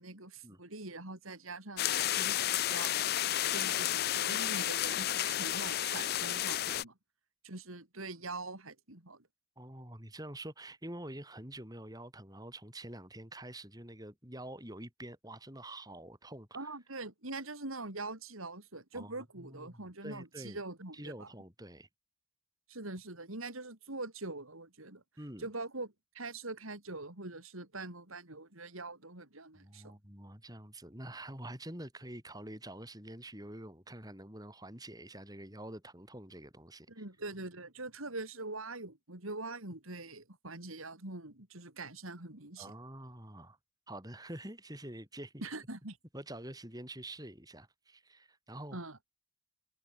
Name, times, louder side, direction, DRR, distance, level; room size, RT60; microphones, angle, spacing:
voice 1, 0.0-2.9 3.5-6.9 7.4-9.3 16.5-21.3 22.7-25.0 25.4-29.8 36.9-42.7 45.4-46.0 48.7-49.0, right 2 dB, 85° right, 4.7 m, -43 dB
sound 1, 1.8-6.8, left 12 dB, 50° left, 0.5 m, -32 dB
voice 2, 9.6-16.6 18.9-20.6 20.9-21.9 25.2-25.5 29.5-37.0 42.6-43.6 43.9-45.5 46.1-48.8, right 1 dB, 20° right, 7.7 m, -47 dB
head